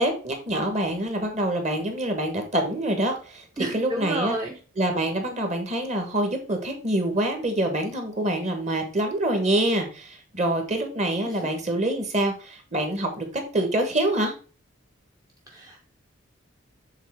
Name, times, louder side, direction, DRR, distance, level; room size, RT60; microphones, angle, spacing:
voice 1, 0.0-4.4 4.8-13.3 13.5-14.3, right 1 dB, 35° right, 5 dB, 1.3 m, -26 dB
voice 2, 3.6-4.6 11.3-11.4 15.5-15.8, right 1 dB, 15° right, 0 dB, 0.6 m, -31 dB
7.3 x 3.9 x 3.5 m, 0.37 s
head